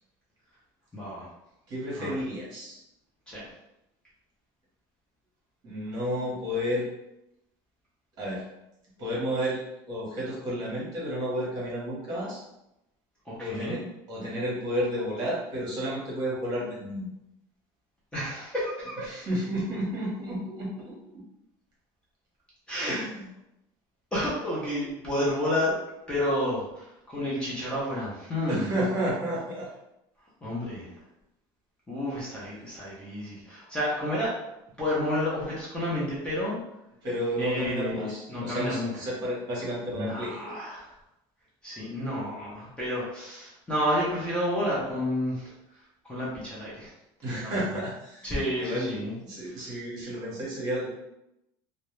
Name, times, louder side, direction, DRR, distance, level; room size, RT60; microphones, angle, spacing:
voice 1, 0.9-1.3 2.0-2.2 3.3-3.5 13.3-13.8 18.1-19.1 22.7-23.0 24.1-25.8 26.1-28.7 30.4-30.9 31.9-34.4 34.8-36.6 37.4-38.9 39.9-40.9 41.6-45.5 46.0-46.9 47.4-47.6 48.2-49.1 49.4-49.6, left 1 dB, 10° left, -8 dB, 0.6 m, -30 dB
voice 2, 1.7-2.8 5.6-6.9 8.2-8.4 9.0-9.6 9.9-12.4 13.4-13.8 14.1-17.1 19.1-20.9 22.7-23.3 28.5-29.7 37.0-40.5 47.2-49.0 49.2-50.9, equal, 40° right, -5 dB, 1.0 m, -31 dB
2.3 x 2.0 x 3.0 m, 0.87 s
cardioid pair, 155°, 11 cm